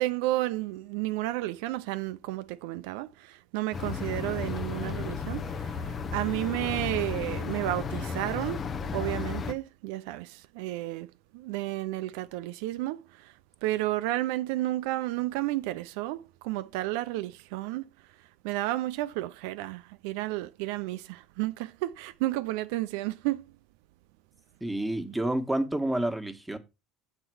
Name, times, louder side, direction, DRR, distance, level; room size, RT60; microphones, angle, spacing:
voice 1, 0.0-8.7 8.9-13.3 13.6-17.9 18.4-23.5, right 17 dB, 75° right, 0.4 m, -32 dB
sound 1, 3.7-9.5, left 5 dB, 35° left, 0.7 m, -34 dB
voice 2, 24.6-26.6, right 1 dB, 5° right, 1.4 m, -29 dB
7.1 x 4.4 x 6.2 m
supercardioid pair, 95°, 0 cm